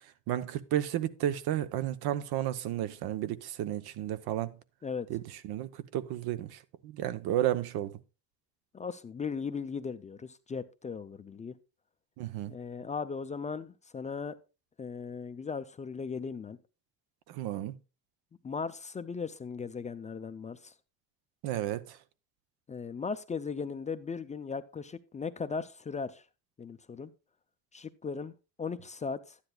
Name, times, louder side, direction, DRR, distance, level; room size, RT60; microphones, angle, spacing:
voice 1, 0.3-4.6 5.1-8.0 12.2-12.5 17.3-17.7 21.4-22.0, right 12 dB, 80° right, 0.8 m, -32 dB
voice 2, 8.7-11.6 12.5-14.4 14.8-16.6 18.4-20.7 22.7-26.2 26.6-27.1 27.7-29.4, left 5 dB, 20° left, 0.3 m, -37 dB
12.0 x 9.9 x 2.2 m
cardioid pair, 125°, 37 cm